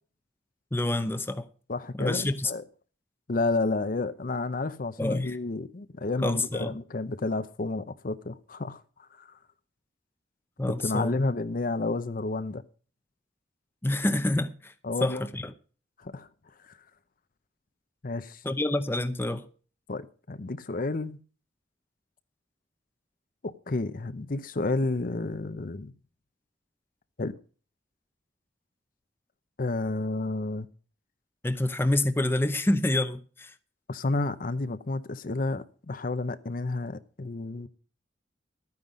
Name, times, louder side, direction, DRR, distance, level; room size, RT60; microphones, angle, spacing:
voice 1, 0.7-1.5 1.9-2.5 5.0-5.4 6.2-6.8 10.6-11.2 13.8-14.7 15.0-15.5 18.4-19.5 31.4-33.5, left 1 dB, 15° left, 0.7 m, -27 dB
voice 2, 1.7-2.6 3.3-8.8 9.2-9.3 10.6-12.6 14.8-15.2 16.0-16.3 18.0-18.4 19.9-21.2 23.4-25.9 27.2-27.3 29.6-30.7 33.9-37.7, left 3 dB, 50° left, 0.7 m, -31 dB
12.0 x 9.5 x 5.1 m
head